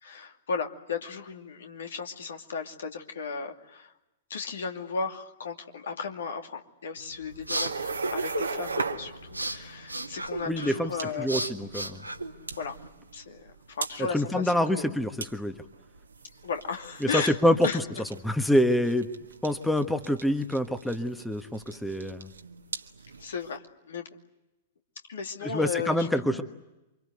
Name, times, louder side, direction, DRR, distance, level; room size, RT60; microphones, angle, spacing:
voice 1, 0.0-3.9 4.3-7.7 8.1-9.2 9.4-11.4 12.6-12.8 13.1-14.9 16.4-17.4 17.6-17.8 23.2-24.1 25.1-26.4, left 5 dB, 60° left, 4 dB, 2.6 m, -35 dB
sound 1, 7.0-12.9, right 1 dB, 85° right, 2.0 m, -35 dB
sound 2, 7.3-23.6, right 5 dB, 70° right, 1.5 m, -40 dB
voice 2, 10.5-10.9 11.2-12.0 14.1-15.6 17.0-17.8 18.2-19.1 19.4-22.3 25.4-26.4, left 1 dB, 5° left, 8 dB, 1.4 m, -26 dB
29.0 x 25.0 x 8.0 m, 0.97 s
figure-of-eight pair, 105°, 0 cm